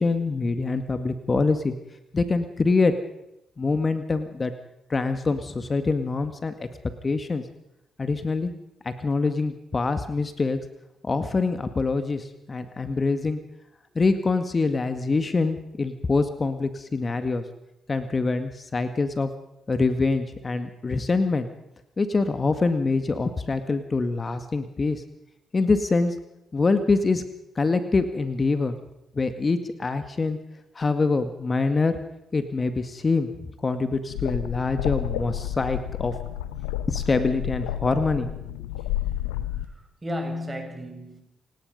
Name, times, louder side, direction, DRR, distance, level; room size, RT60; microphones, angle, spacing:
voice 1, 0.0-1.7 2.1-2.9 3.6-4.5 4.9-6.7 7.0-7.4 8.0-8.5 8.8-10.6 11.0-13.4 14.0-17.4 17.9-19.3 19.7-21.5 22.0-25.0 25.5-26.2 26.5-27.2 27.6-28.8 29.2-30.4 30.8-32.0 32.3-33.3 33.6-36.1 36.9-38.3, left 3 dB, 35° left, 1.9 m, -25 dB
sound 1, 34.1-39.7, left 12 dB, 80° left, 1.1 m, -30 dB
voice 2, 39.5-41.2, left 1 dB, 25° right, 6.8 m, -34 dB
29.0 x 18.0 x 5.5 m
hypercardioid pair, 40°, 0 cm